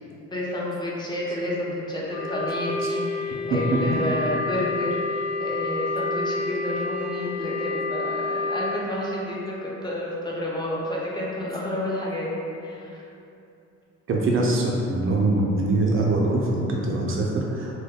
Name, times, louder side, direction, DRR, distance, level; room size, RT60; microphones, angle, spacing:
voice 1, 0.3-12.3 12.6-13.0, left 1 dB, 15° left, -5 dB, 0.6 m, -30 dB
Wind instrument woodwind instrument, 2.1-8.8, left 3 dB, 70° left, 0.9 m, -29 dB
voice 2, 14.1-17.8, right 2 dB, 45° right, -2 dB, 0.4 m, -23 dB
2.1 x 2.1 x 3.5 m, 2.7 s
cardioid pair, 90°, 30 cm